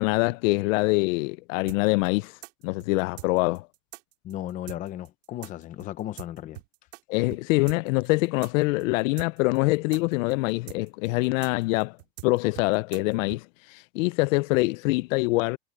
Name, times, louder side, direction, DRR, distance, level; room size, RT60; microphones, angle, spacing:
voice 1, 0.0-2.3 2.6-3.7 7.1-12.0 12.2-13.5 13.7-15.6, left 23 dB, 75° left, 0.5 m, -24 dB
sound 1, 1.7-7.0 7.3-7.4 7.7-13.4, right 23 dB, 70° right, 3.4 m, -44 dB
voice 2, 4.2-6.6, left 12 dB, 20° left, 0.5 m, -35 dB
supercardioid pair, 175°, 40 cm